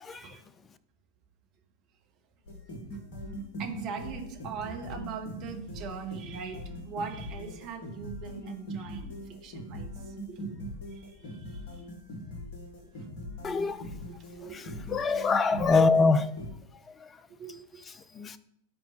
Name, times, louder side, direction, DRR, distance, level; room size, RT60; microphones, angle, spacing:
voice 1, 0.1-0.4 2.9-3.3 3.6-10.6 10.9-11.8 13.0-13.1 14.1-14.8 17.3-17.6, right 6 dB, 40° right, 1.2 m, -41 dB
sound 1, 2.5-16.5, equal, 45° left, 1.5 m, -41 dB
voice 2, 13.4-13.8 14.5-16.3 18.2-18.4, left 4 dB, 20° left, 0.4 m, -24 dB
10.5 x 4.4 x 2.9 m
figure-of-eight pair, 90°, 0 cm